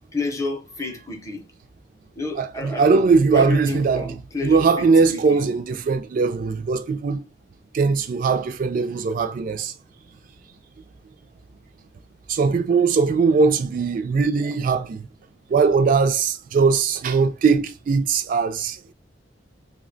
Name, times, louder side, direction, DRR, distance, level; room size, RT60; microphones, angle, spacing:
voice 1, 0.0-1.4 2.2-5.4, left 3 dB, 20° left, 0.6 m, -30 dB
voice 2, 2.4-4.1 4.4-7.2 7.7-9.7 12.3-15.0 15.5-18.9, right 4 dB, 50° right, 0.3 m, -20 dB
2.7 x 2.1 x 3.8 m
head